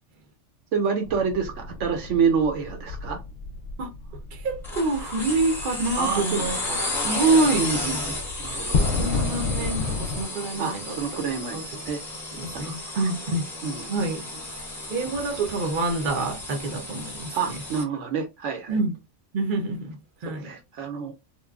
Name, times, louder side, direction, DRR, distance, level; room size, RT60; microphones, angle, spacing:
voice 1, 0.7-3.2 6.0-6.8 7.6-8.9 10.6-12.0 12.5-13.1 13.6-13.8 17.3-18.8 20.3-21.1, right 6 dB, 75° right, 0.9 m, -28 dB
sound 1, 1.0-10.2, left 4 dB, 65° left, 0.8 m, -32 dB
voice 2, 4.3-6.6 7.0-7.7 8.8-10.9 11.5-11.6 12.3-13.5 13.9-14.3 14.9-17.6 18.7-18.9 19.3-20.5, right 3 dB, 50° right, 0.7 m, -26 dB
sound 2, 4.6-17.8, left 2 dB, ahead, 0.6 m, -33 dB
3.0 x 2.2 x 2.2 m
omnidirectional pair, 1.3 m